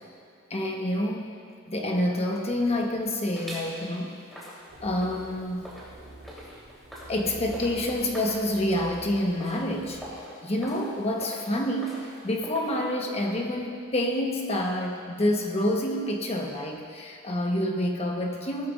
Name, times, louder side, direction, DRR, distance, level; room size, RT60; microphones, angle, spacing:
voice 1, 0.5-1.3 1.7-4.2 4.8-5.7 7.1-10.0 10.4-18.7, left 1 dB, 30° left, 1 dB, 1.1 m, -28 dB
sound 1, 1.9-3.0 3.4-12.9, equal, ahead, 3.3 m, -45 dB
sound 2, 4.7-10.2, right 1 dB, 70° right, 3.3 m, -46 dB
17.0 x 13.0 x 2.5 m, 2.2 s
head